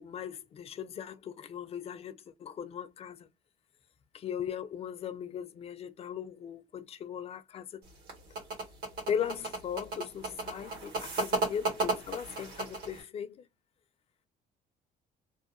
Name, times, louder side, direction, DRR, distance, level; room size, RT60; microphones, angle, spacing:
voice 1, 0.0-3.3 4.1-7.8 9.1-13.5, left 8 dB, 35° left, 0.4 m, -38 dB
sound 1, 7.8-13.0, right 3 dB, 80° right, 1.5 m, -34 dB
2.7 x 2.1 x 2.4 m
cardioid pair, 110°, 17 cm